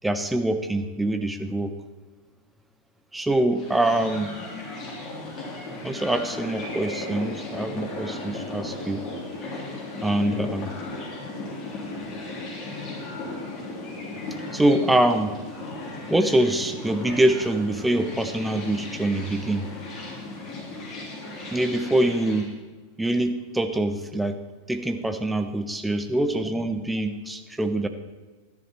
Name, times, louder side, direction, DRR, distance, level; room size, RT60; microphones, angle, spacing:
voice 1, 0.0-1.7 3.1-4.3 5.8-9.1 10.0-10.7 14.5-15.4 16.1-19.7 21.5-22.5 23.0-24.4 24.7-27.9, right 1 dB, 5° right, 8 dB, 0.8 m, -24 dB
sound 1, 3.5-22.5, left 2 dB, 30° left, 3.5 m, -36 dB
12.5 x 10.5 x 4.4 m, 1.3 s
figure-of-eight pair, 90°, 0 cm